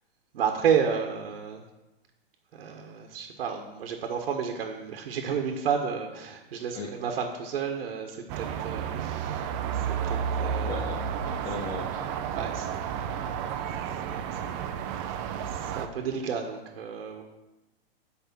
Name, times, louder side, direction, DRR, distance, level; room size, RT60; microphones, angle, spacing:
voice 1, 0.3-1.6 2.5-10.9 12.3-13.2 14.1-15.2 15.4-17.2, right 7 dB, 70° right, 3 dB, 1.4 m, -32 dB
sound 1, 8.3-15.9, right 8 dB, 30° right, 0.6 m, -31 dB
voice 2, 10.7-12.3, left 3 dB, 10° left, 2 dB, 0.4 m, -38 dB
8.4 x 5.3 x 6.9 m, 1.0 s
hypercardioid pair, 145°, 31 cm